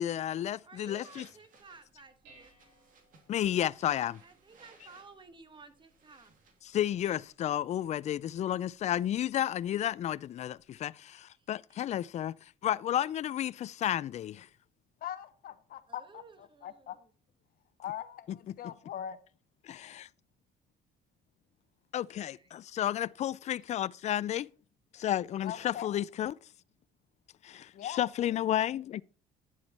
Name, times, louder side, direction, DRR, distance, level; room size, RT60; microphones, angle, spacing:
voice 1, 0.0-1.3 3.3-4.2 6.7-12.4 12.6-14.3 18.5-18.6 19.6-20.1 21.9-24.5 24.9-26.3 27.4-29.0, left 11 dB, 40° left, 0.4 m, -32 dB
voice 2, 0.6-2.5 4.2-6.3 11.3-11.5 15.9-17.1 22.3-22.5 23.6-23.7, right 4 dB, 30° right, 1.3 m, -55 dB
sound 1, 0.8-7.3, right 4 dB, 55° right, 2.5 m, -63 dB
Dishes pots and pans, 1.6-10.8, right 2 dB, 90° right, 4.7 m, -68 dB
voice 3, 15.0-17.0 17.8-19.2 25.4-26.0 27.7-28.3, left 10 dB, 60° left, 1.0 m, -41 dB
9.8 x 7.4 x 4.2 m
cardioid pair, 110°, 17 cm